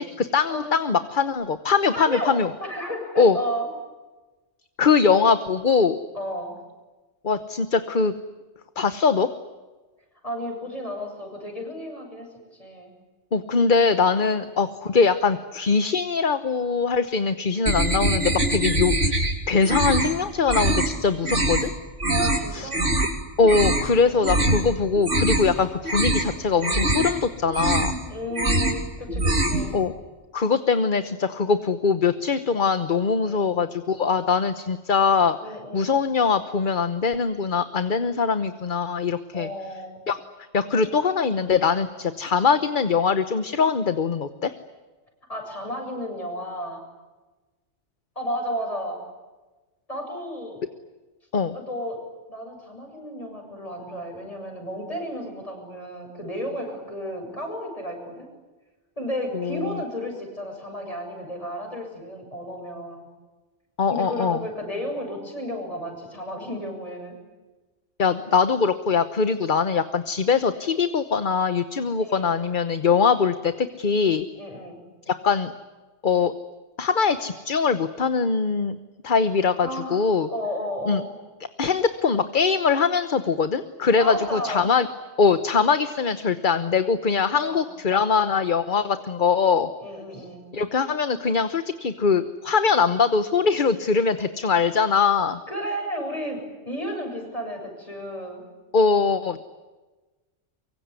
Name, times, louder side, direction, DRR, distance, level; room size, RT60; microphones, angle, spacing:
voice 1, 0.0-2.5 3.2-3.4 4.8-6.0 7.2-8.1 8.8-9.3 13.3-21.7 22.5-22.7 23.0-23.1 23.4-28.0 29.7-29.9 30.3-35.4 35.7-39.5 40.1-40.2 40.5-44.5 51.3-51.5 59.3-59.8 63.8-64.4 68.0-74.3 75.1-75.5 76.0-76.3 76.8-78.8 79.0-80.3 80.9-81.0 81.6-84.9 85.2-89.7 90.5-95.4 98.7-99.4, left 5 dB, 45° left, 11 dB, 1.2 m, -22 dB
voice 2, 1.9-3.7 6.1-6.6 10.2-12.9 14.2-14.5 22.1-22.9 24.0-24.3 28.1-29.8 33.2-33.6 35.4-36.0 39.3-40.1 45.3-46.8 48.2-49.0 49.9-50.6 51.5-52.0 52.3-58.3 59.0-63.1 63.9-67.2 72.0-72.3 74.4-74.8 79.6-80.0 80.3-81.1 84.0-84.7 87.4-87.6 89.8-90.5 95.5-96.4 96.7-98.4, equal, 30° left, 3 dB, 7.7 m, -33 dB
sound 1, 17.7-19.3 19.6-20.1 20.5-20.9 21.2-21.6 22.0-22.4 22.7-23.1 23.4-23.9 24.2-24.6 24.9-25.5 25.8-26.3 26.6-27.1 27.5-28.0 28.3-28.8 29.1-29.7, right 1 dB, 90° right, 4.1 m, -23 dB
24.0 x 24.0 x 9.6 m, 1.2 s
omnidirectional pair, 1.2 m